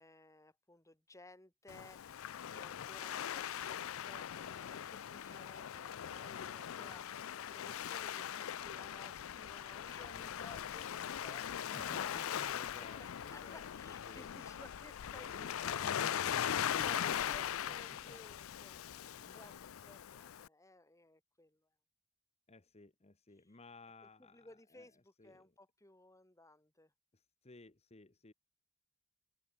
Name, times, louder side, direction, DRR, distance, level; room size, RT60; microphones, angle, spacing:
voice 1, 0.0-12.4 13.0-16.2 16.7-21.7 24.0-26.9, left 2 dB, 15° left, 5.0 m, -58 dB
Waves surf, 1.7-20.5, left 9 dB, 70° left, 0.4 m, -40 dB
voice 2, 10.0-10.3 11.7-14.3 15.3-18.2 18.7-19.5 22.5-24.9 25.2-25.5 27.1-28.3, left 3 dB, 30° left, 1.1 m, -56 dB
head